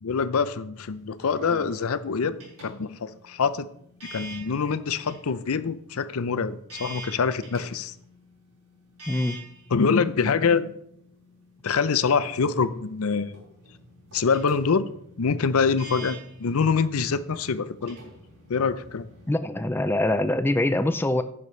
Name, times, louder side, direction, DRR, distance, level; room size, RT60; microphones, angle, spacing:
voice 1, 0.0-3.7 4.1-7.9 9.7-10.7 11.6-13.4 14.1-14.9 15.2-18.0 18.5-19.1, left 5 dB, 75° left, 15 dB, 0.5 m, -25 dB
sound 1, 0.7-19.3, right 1 dB, 85° right, 4.4 m, -46 dB
voice 2, 9.1-9.4 19.3-21.2, left 1 dB, 10° left, 10 dB, 0.3 m, -24 dB
11.0 x 10.0 x 3.2 m, 0.70 s
head